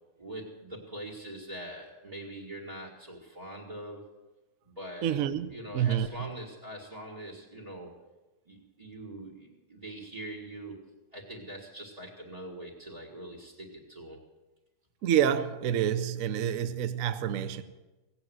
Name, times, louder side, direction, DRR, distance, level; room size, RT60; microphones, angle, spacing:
voice 1, 0.2-4.0 4.6-5.2 5.5-7.9 8.4-10.8 11.1-14.2, right 1 dB, 20° right, 1.7 m, -43 dB
voice 2, 5.0-6.3 15.0-17.6, right 9 dB, 75° right, 0.7 m, -28 dB
17.5 x 8.7 x 7.8 m
omnidirectional pair, 2.4 m